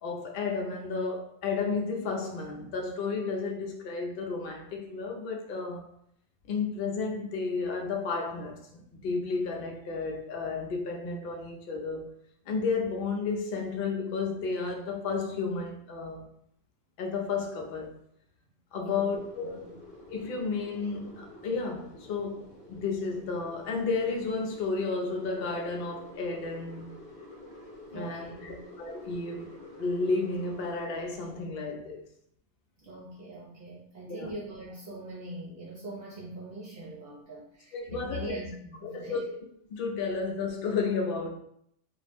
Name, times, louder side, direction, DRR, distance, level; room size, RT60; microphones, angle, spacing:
voice 1, 0.0-5.8 6.5-12.1 12.5-16.3 17.0-18.0 18.7-19.7 20.1-26.9 27.9-32.0 34.1-34.3 37.7-38.4 38.8-39.3 39.7-41.3, left 4 dB, 60° left, 0.6 m, -32 dB
sound 1, 18.9-31.4, left 2 dB, 45° left, 1.1 m, -49 dB
voice 2, 27.9-28.6 32.8-39.3, right 2 dB, 60° right, 0.8 m, -42 dB
2.4 x 2.0 x 3.2 m
omnidirectional pair, 1.3 m